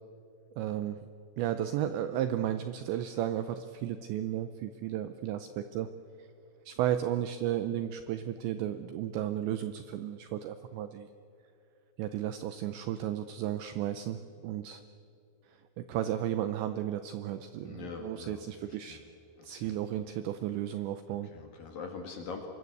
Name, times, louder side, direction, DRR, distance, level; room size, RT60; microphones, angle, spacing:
voice 1, 0.6-1.0 1.4-5.9 6.2-6.3 6.7-11.1 12.0-14.8 15.5-19.0 19.4-21.3, right 11 dB, 80° right, 10 dB, 2.6 m, -34 dB
voice 2, 17.6-18.4 18.9-19.0 19.4-19.7 21.3-22.5, left 5 dB, 60° left, 3 dB, 2.7 m, -42 dB
26.0 x 22.0 x 8.3 m, 2.6 s
omnidirectional pair, 6.0 m